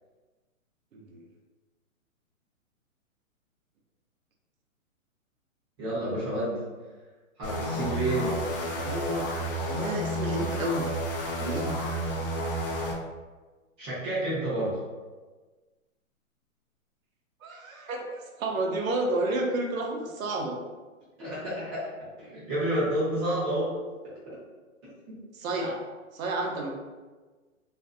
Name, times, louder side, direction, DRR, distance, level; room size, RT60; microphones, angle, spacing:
voice 1, 0.9-1.2 8.7-9.3 9.6-10.9 11.4-11.8 17.4-20.6 25.3-25.8 26.1-26.7, right 2 dB, 70° right, 1 dB, 0.7 m, -31 dB
voice 2, 5.8-6.6 7.4-8.4 13.8-14.8 21.2-21.8 22.2-23.7 24.3-24.4 25.1-25.2, right 1 dB, 20° right, -9 dB, 0.7 m, -29 dB
sound 1, 7.4-13.0, equal, 40° left, 0.5 m, -31 dB
2.5 x 2.5 x 2.4 m, 1.3 s
hypercardioid pair, 135°, 42 cm